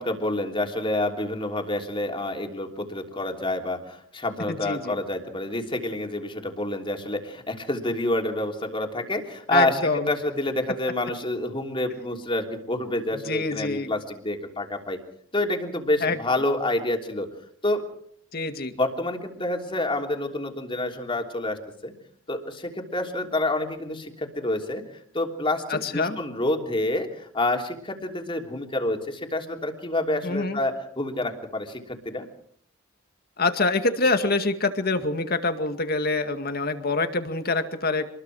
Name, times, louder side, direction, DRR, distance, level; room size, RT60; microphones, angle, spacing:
voice 1, 0.0-9.8 10.1-15.0 15.3-17.3 17.6-17.8 18.8-21.9 22.3-24.8 25.1-32.2, left 2 dB, 25° left, 3 dB, 3.2 m, -28 dB
voice 2, 4.5-5.0 9.5-10.1 13.3-13.9 16.0-16.2 18.3-18.8 25.7-26.2 30.2-30.6 33.4-38.1, left 3 dB, 50° left, 8 dB, 2.2 m, -25 dB
27.0 x 21.5 x 4.9 m, 0.64 s
head